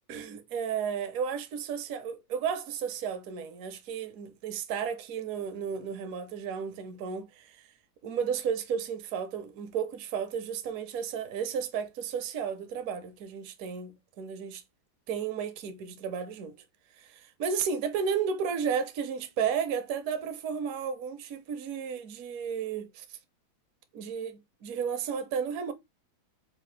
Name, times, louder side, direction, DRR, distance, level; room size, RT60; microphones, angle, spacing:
voice 1, 0.1-7.6 8.0-14.6 15.1-16.6 17.0-23.0 23.9-25.7, right 7 dB, 65° right, 0.9 m, -33 dB
4.8 x 2.4 x 3.1 m
omnidirectional pair, 2.1 m